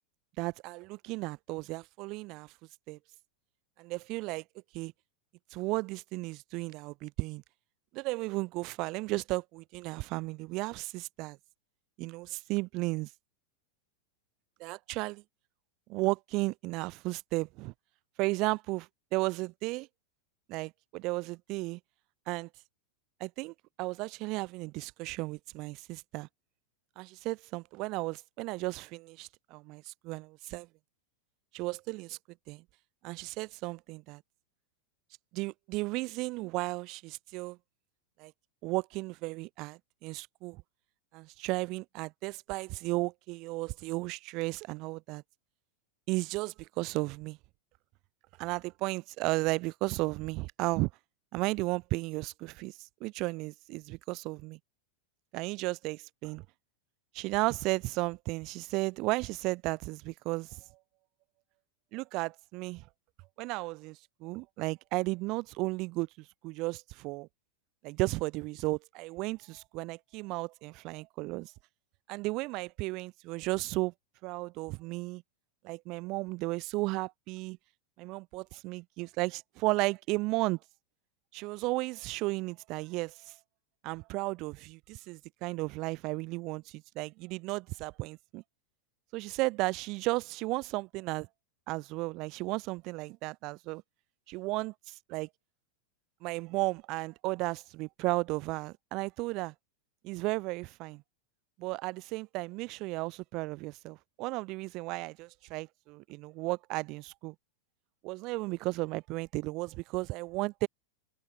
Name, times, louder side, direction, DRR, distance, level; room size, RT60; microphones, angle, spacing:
voice 1, 0.4-2.5 2.9-3.0 3.8-4.4 4.7-4.9 5.5-7.4 7.9-11.4 12.0-13.1 14.6-15.2 15.9-17.7 18.2-19.9 20.5-21.8 22.3-22.5 23.2-26.3 27.0-30.7 31.5-32.2 32.5-32.6 33.0-34.2 35.3-37.6 38.2-38.3 38.6-40.6 41.1-45.2 46.1-47.4 48.4-50.9 51.3-54.6 55.3-56.4 57.1-60.6 61.9-62.8 63.4-67.3 67.8-71.5 72.1-73.9 74.2-75.2 75.6-77.6 78.0-80.6 81.3-83.3 83.8-88.4 89.1-91.3 91.7-93.8 94.3-95.3 96.2-99.5 100.0-101.0 101.6-107.3 108.0-110.7, right 23 dB, 40° right, 0.3 m, -34 dB
figure-of-eight pair, 90°, 0 cm